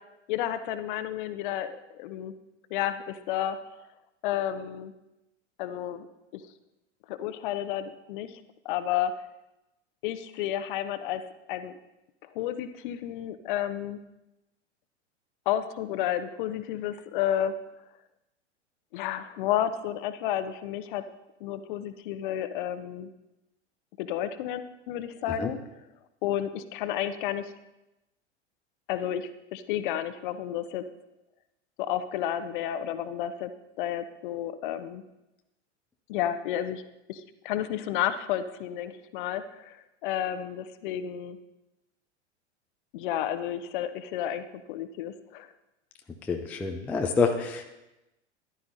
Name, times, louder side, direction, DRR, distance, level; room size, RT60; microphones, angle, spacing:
voice 1, 0.3-2.3 2.7-3.6 4.2-4.9 5.6-6.1 6.3-6.4 7.1-9.1 10.0-11.2 11.5-11.8 12.3-14.0 15.5-17.5 18.9-21.0 21.4-23.1 24.0-25.6 26.2-27.5 28.9-30.8 31.8-33.5 33.8-35.0 36.1-36.8 37.1-41.4 42.9-45.5, left 11 dB, 45° left, 11 dB, 0.7 m, -31 dB
voice 2, 46.2-47.6, left 4 dB, 5° left, 4 dB, 0.3 m, -27 dB
14.0 x 11.5 x 2.6 m, 0.97 s
figure-of-eight pair, 90°, 36 cm